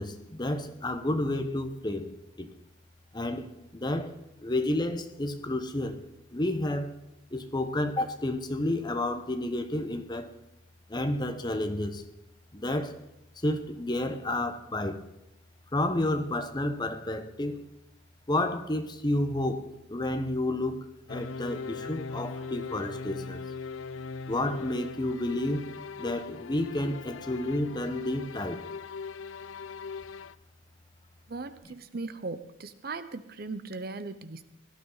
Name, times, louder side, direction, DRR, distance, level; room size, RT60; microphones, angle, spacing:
voice 1, 0.0-2.1 2.4-2.5 3.1-6.0 6.3-6.9 7.3-10.3 10.9-12.0 12.5-13.0 13.4-15.0 15.7-17.6 18.3-23.4 24.3-25.7 26.0-28.7, left 1 dB, 20° left, 7 dB, 1.1 m, -30 dB
sound 1, 21.1-30.3, left 5 dB, 80° left, 0.5 m, -39 dB
voice 2, 31.3-34.4, right 3 dB, 50° right, 12 dB, 0.7 m, -38 dB
17.5 x 12.5 x 4.0 m, 0.90 s
head